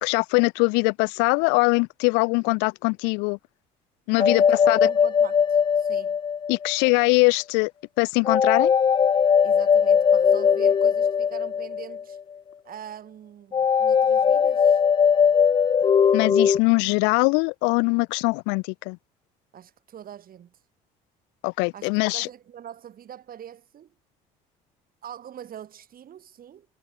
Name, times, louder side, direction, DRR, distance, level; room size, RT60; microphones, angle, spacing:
voice 1, 0.0-3.4 4.1-4.8 6.5-7.7 8.0-8.7 16.1-19.0 21.4-22.3, left 33 dB, 80° left, 0.5 m, -22 dB
voice 2, 4.1-6.2 9.4-12.2 12.6-14.8 19.5-20.6 21.7-23.9 25.0-26.7, right 10 dB, 55° right, 4.0 m, -43 dB
sound 1, 4.2-6.9 8.2-12.2 13.5-16.6, left 7 dB, 25° left, 0.4 m, -20 dB
supercardioid pair, 75°, 18 cm